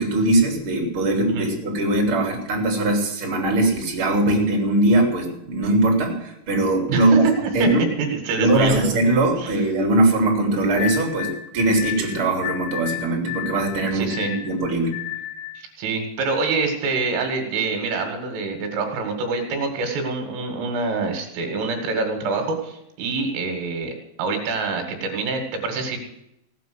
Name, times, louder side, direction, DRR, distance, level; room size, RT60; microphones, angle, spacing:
voice 1, 0.0-7.2 7.5-7.9 8.4-14.9, right 2 dB, 25° right, 0 dB, 4.3 m, -21 dB
voice 2, 6.9-7.7 8.0-9.0 9.4-9.6 13.9-14.3 15.6-26.0, right 4 dB, 75° right, 4 dB, 4.6 m, -26 dB
sound 1, 10.8-15.6, left 13 dB, 75° left, 3.5 m, -32 dB
17.0 x 9.3 x 7.9 m, 0.81 s
omnidirectional pair, 5.9 m